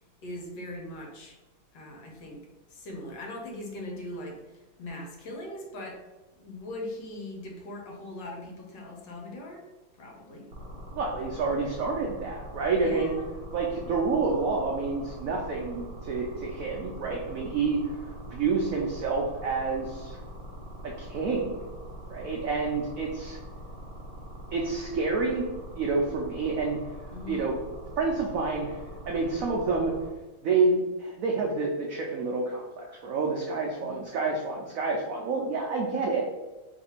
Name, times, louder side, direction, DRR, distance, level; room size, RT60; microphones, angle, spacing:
voice 1, 0.2-1.4 1.7-2.4 2.7-6.0 6.4-9.6 9.9-10.5 12.7-13.3 27.1-27.5 33.8-34.1, left 1 dB, 70° left, -1 dB, 1.5 m, -40 dB
sound 1, 10.5-30.1, equal, 50° right, 1.3 m, -42 dB
voice 2, 10.9-13.1 13.5-17.8 18.3-20.2 20.8-21.6 22.1-23.4 24.5-25.5 25.8-26.8 27.3-27.5 28.0-28.8 29.1-29.9 30.4-36.2, right 4 dB, 80° right, -1 dB, 0.7 m, -28 dB
3.3 x 2.6 x 4.3 m, 1.1 s
omnidirectional pair, 2.1 m